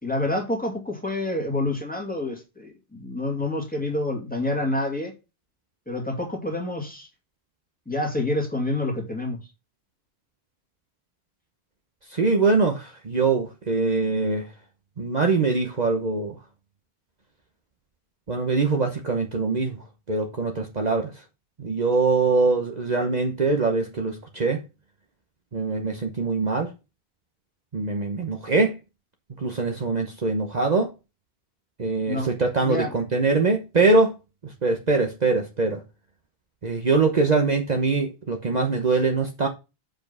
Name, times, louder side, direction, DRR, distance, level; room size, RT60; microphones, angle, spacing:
voice 1, 0.0-5.1 5.9-7.1 7.9-9.4 32.1-32.3 32.6-32.9, left 2 dB, 10° left, 2.2 m, -28 dB
voice 2, 12.1-14.4 15.0-16.3 18.3-19.8 20.1-21.1 21.6-24.6 25.5-26.7 27.7-28.8 29.4-30.9 31.8-34.1 34.6-35.8 36.6-39.5, right 3 dB, 45° right, 1.1 m, -23 dB
7.1 x 5.3 x 5.5 m
omnidirectional pair, 1.1 m